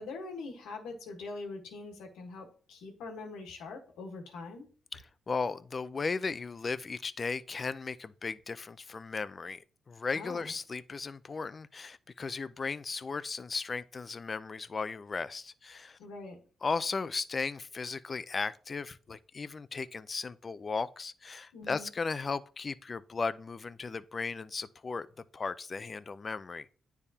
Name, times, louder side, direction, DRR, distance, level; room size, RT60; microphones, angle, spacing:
voice 1, 0.0-4.7 10.1-10.5 16.0-16.4 21.5-21.9, left 3 dB, 85° left, 1.3 m, -43 dB
voice 2, 4.9-16.0 16.6-25.1 25.3-26.7, left 4 dB, 40° left, 0.4 m, -36 dB
9.6 x 3.5 x 2.8 m
supercardioid pair, 60°, 0 cm